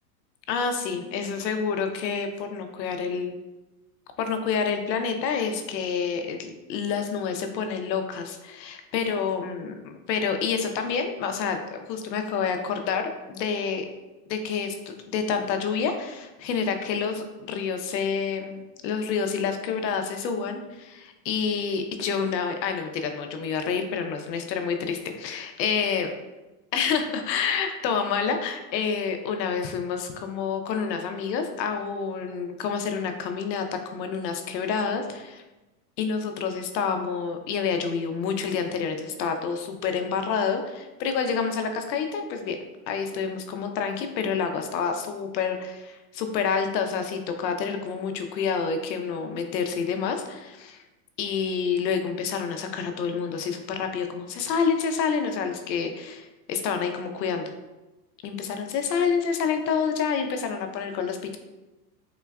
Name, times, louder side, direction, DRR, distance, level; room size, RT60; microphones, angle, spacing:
voice 1, 0.5-3.3 4.2-13.9 14.3-14.8 15.1-26.1 26.7-35.4 36.0-42.6 42.9-50.8 51.2-57.5 58.2-61.4, left 6 dB, 85° left, 6 dB, 0.6 m, -28 dB
3.8 x 2.2 x 2.3 m, 1.1 s
supercardioid pair, 175°, 50 cm